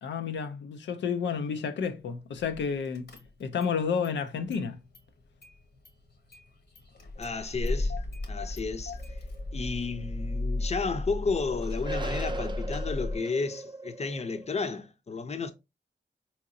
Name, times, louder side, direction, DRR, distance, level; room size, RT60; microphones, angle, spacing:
voice 1, 0.0-3.1 3.4-4.8, left 6 dB, 90° left, 0.4 m, -31 dB
Car / Engine starting, 2.4-2.6 2.9-3.8 4.0-5.1 5.4-13.2, left 2 dB, 65° left, 1.0 m, -35 dB
voice 2, 7.2-7.9 8.3-9.0 9.5-15.5, left 4 dB, 35° left, 0.6 m, -32 dB
sound 1, 9.0-10.4 10.7-10.8 11.5-14.5, right 3 dB, 25° right, 0.4 m, -39 dB
3.8 x 2.9 x 2.5 m
cardioid pair, 55°, 18 cm